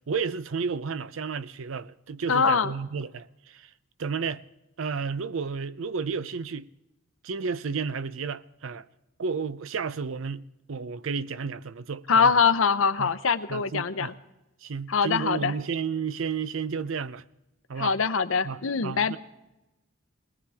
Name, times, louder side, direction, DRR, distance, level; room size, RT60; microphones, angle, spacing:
voice 1, 0.1-3.7 4.0-4.4 4.8-6.7 7.2-8.9 9.2-12.4 13.0-13.1 13.5-14.1 14.6-17.2 17.7-17.9 18.4-19.2, right 5 dB, 70° right, 0.5 m, -32 dB
voice 2, 2.3-2.7 12.1-14.1 14.9-15.5 17.8-19.2, left 5 dB, 70° left, 0.8 m, -23 dB
21.5 x 18.5 x 3.5 m
head